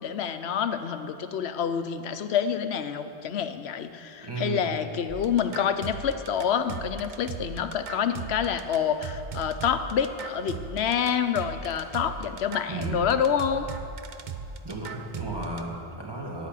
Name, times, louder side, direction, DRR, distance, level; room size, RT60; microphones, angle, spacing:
voice 1, 0.0-13.7, left 8 dB, 70° left, 10 dB, 0.9 m, -27 dB
voice 2, 4.2-4.8 12.7-13.0 14.6-16.5, right 3 dB, 20° right, -2 dB, 2.0 m, -34 dB
sound 1, 5.1-15.6, right 5 dB, 50° right, 0.7 m, -38 dB
10.0 x 10.0 x 8.3 m, 2.9 s
omnidirectional pair, 1.1 m